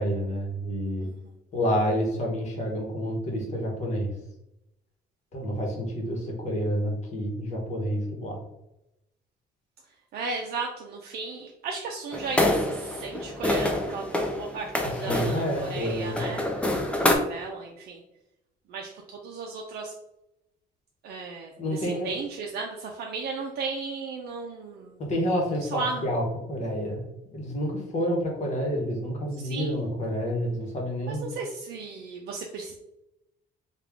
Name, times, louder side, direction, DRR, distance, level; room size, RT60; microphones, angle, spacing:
voice 1, 0.0-1.1 1.5-4.1 5.3-8.4 14.8-16.2 21.6-22.1 25.0-26.2 26.5-27.0 27.3-31.3, equal, 40° left, 0 dB, 1.1 m, -29 dB
voice 2, 1.0-1.3 10.1-16.7 17.0-18.0 18.7-19.9 21.0-25.0 25.4-26.0 29.4-29.8 31.1-32.7, right 4 dB, 60° right, 0 dB, 0.5 m, -35 dB
sound 1, 12.1-17.1, left 1 dB, 5° left, 0.4 m, -27 dB
3.5 x 2.4 x 3.5 m, 0.87 s
cardioid pair, 145°, 18 cm